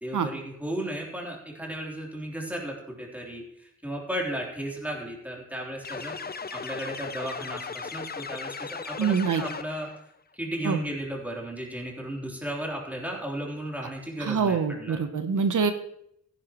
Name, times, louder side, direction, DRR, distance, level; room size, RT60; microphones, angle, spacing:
voice 1, 0.0-6.2 6.5-9.9 10.3-15.0, right 1 dB, 5° right, -2 dB, 3.3 m, -35 dB
sound 1, 5.8-10.0, left 5 dB, 35° left, 0.5 m, -37 dB
voice 2, 9.0-9.4 10.6-10.8 14.2-15.7, right 6 dB, 90° right, 8 dB, 0.9 m, -25 dB
16.0 x 10.5 x 3.0 m, 0.74 s
wide cardioid pair, 85°, 30 cm